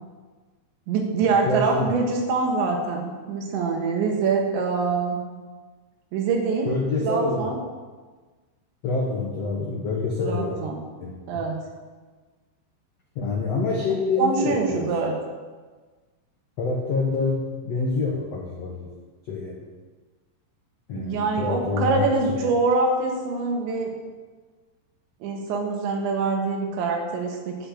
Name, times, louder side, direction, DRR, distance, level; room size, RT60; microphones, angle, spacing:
voice 1, 0.9-5.2 6.1-6.7 7.0-7.6 10.2-10.8 11.3-11.7 14.2-15.2 20.9-23.9 25.2-27.6, right 4 dB, 90° right, 1 dB, 3.9 m, -24 dB
voice 2, 1.4-1.9 6.6-7.4 8.8-10.6 11.0-11.1 13.1-14.8 16.6-18.9 19.3-19.6 20.9-22.4, left 3 dB, 80° left, -2 dB, 1.4 m, -26 dB
9.8 x 6.1 x 8.5 m, 1.4 s
omnidirectional pair, 5.1 m